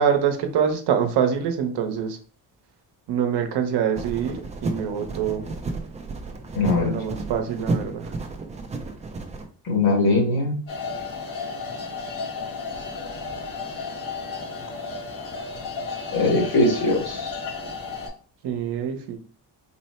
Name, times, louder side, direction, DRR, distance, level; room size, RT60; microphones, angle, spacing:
voice 1, 0.0-2.2 3.1-5.5 6.7-8.1 18.4-19.2, right 8 dB, 60° right, 5 dB, 0.8 m, -25 dB
sound 1, 4.0-9.5, right 3 dB, 20° right, 0.3 m, -32 dB
voice 2, 6.5-6.9 9.6-10.6 16.1-17.4, left 2 dB, 55° left, 0 dB, 1.6 m, -21 dB
sound 2, 10.7-18.1, left 4 dB, 85° left, 2.0 m, -33 dB
4.3 x 2.0 x 4.2 m, 0.41 s
cardioid pair, 165°, 44 cm